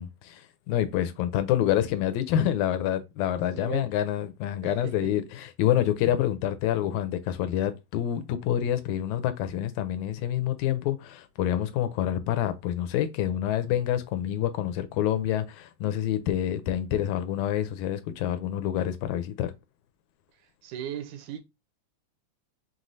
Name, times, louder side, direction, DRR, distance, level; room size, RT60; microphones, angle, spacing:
voice 1, 0.0-19.5, left 11 dB, 80° left, 1.9 m, -27 dB
voice 2, 3.6-3.9 4.6-5.1 20.4-21.4, right 10 dB, 85° right, 2.1 m, -37 dB
5.5 x 3.0 x 2.6 m
omnidirectional pair, 3.5 m